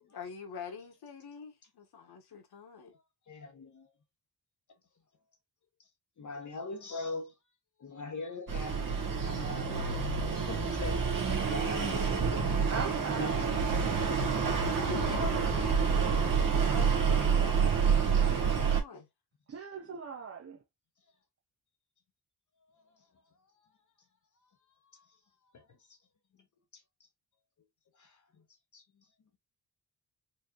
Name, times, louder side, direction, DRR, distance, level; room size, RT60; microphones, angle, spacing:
voice 1, 0.1-2.9 14.8-17.8 18.3-19.1, left 6 dB, 70° left, 1.5 m, -45 dB
voice 2, 3.3-3.9 6.2-7.3 7.8-10.0 10.5-12.3 13.1-13.5 24.9-25.0 25.5-25.6 28.0-28.2 28.7-28.8, left 3 dB, 50° left, 1.0 m, -42 dB
sound 1, 8.5-18.8, right 6 dB, 55° right, 1.6 m, -28 dB
voice 3, 12.7-13.5 14.7-15.2 19.5-20.6, right 6 dB, 35° right, 0.7 m, -41 dB
4.7 x 3.2 x 2.5 m
wide cardioid pair, 145°, 40 cm